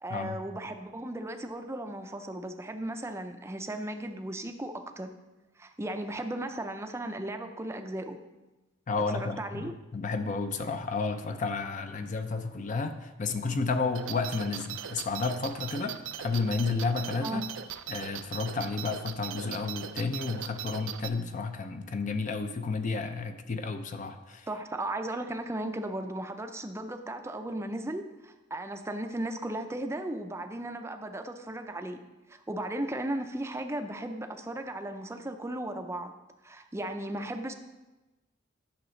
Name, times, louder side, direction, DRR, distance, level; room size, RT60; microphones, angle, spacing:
voice 1, 0.0-5.2 5.6-8.2 9.1-9.7 17.2-17.4 24.5-32.0 32.3-36.1 36.4-37.5, right 1 dB, 15° right, 7 dB, 0.4 m, -36 dB
voice 2, 8.9-17.5 17.9-24.5, left 4 dB, 40° left, 8 dB, 0.5 m, -32 dB
sound 1, 13.9-21.1, right 9 dB, 85° right, 0.4 m, -39 dB
10.0 x 6.4 x 3.2 m, 1.1 s
head